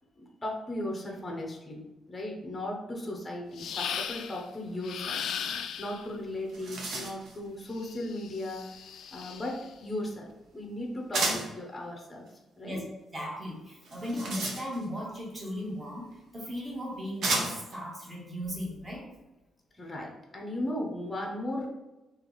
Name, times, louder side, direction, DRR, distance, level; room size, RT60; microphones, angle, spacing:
voice 1, 0.1-5.2 5.8-12.3 12.6-12.8 19.7-21.7, left 1 dB, 15° left, 0 dB, 0.7 m, -37 dB
sound 1, 3.6-4.4 4.8-6.1 7.8-9.7, left 8 dB, 70° left, 0.3 m, -37 dB
sound 2, 6.0-6.1 6.4-7.4 11.1-11.6 13.8-15.0 16.1-16.2 17.2-17.8, right 2 dB, 70° right, 0.9 m, -32 dB
voice 2, 13.1-16.1 16.3-19.0, equal, 20° right, -4 dB, 1.2 m, -36 dB
3.3 x 2.9 x 3.9 m, 1.0 s
cardioid pair, 150°, 0 cm